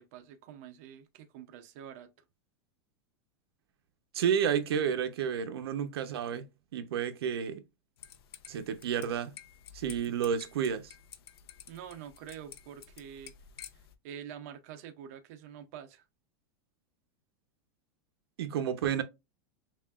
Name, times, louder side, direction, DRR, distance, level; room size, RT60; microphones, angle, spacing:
voice 1, 0.0-2.1 11.7-13.3 13.7-16.1, right 9 dB, 40° right, 0.5 m, -47 dB
voice 2, 4.1-6.5 6.7-7.6 8.5-9.3 9.7-10.9 18.4-19.0, right 8 dB, 90° right, 0.8 m, -31 dB
sound 1, 8.0-13.9, left 9 dB, 90° left, 0.7 m, -52 dB
5.7 x 2.4 x 2.3 m
supercardioid pair, 180°, 13 cm